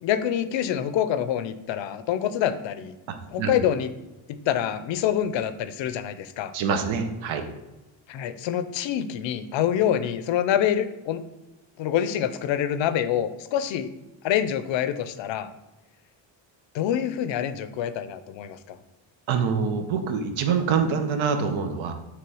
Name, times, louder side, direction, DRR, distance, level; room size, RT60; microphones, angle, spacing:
voice 1, 0.0-2.9 3.3-3.9 4.3-6.5 8.1-11.2 11.8-13.9 14.2-15.5 16.7-18.8, left 10 dB, 75° left, 13 dB, 0.5 m, -26 dB
voice 2, 6.5-7.4 19.3-21.9, right 6 dB, 85° right, 6 dB, 0.9 m, -25 dB
6.0 x 3.2 x 4.7 m, 1.0 s
cardioid pair, 170°, 46 cm